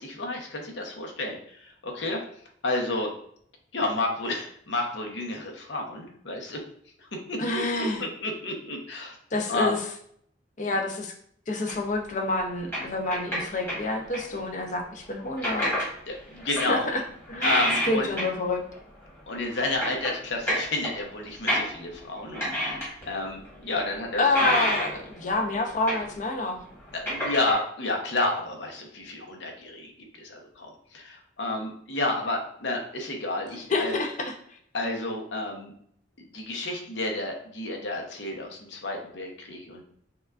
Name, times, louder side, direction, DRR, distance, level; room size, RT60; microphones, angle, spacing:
voice 1, 0.0-2.2 2.6-3.1 3.7-6.6 7.0-7.4 7.8-9.2 9.5-9.7 16.1-16.9 17.4-18.1 19.3-24.5 26.9-33.9 34.7-35.7 36.3-39.8, left 2 dB, 70° left, 1 dB, 0.9 m, -31 dB
voice 2, 7.4-8.0 9.3-9.8 10.6-11.1 11.5-15.7 16.7-17.0 17.3-18.6 24.2-26.6 33.7-34.3, left 2 dB, 40° left, 2 dB, 0.6 m, -28 dB
sound 1, 11.7-11.9 12.7-14.4 15.4-15.9 16.4-18.5 18.8-18.9 19.4-22.0 22.3-23.2 23.5-23.6 24.3-25.2 25.5-26.4 26.7-27.5, equal, 15° left, 1.3 m, -29 dB
5.7 x 2.3 x 2.4 m, 0.64 s
head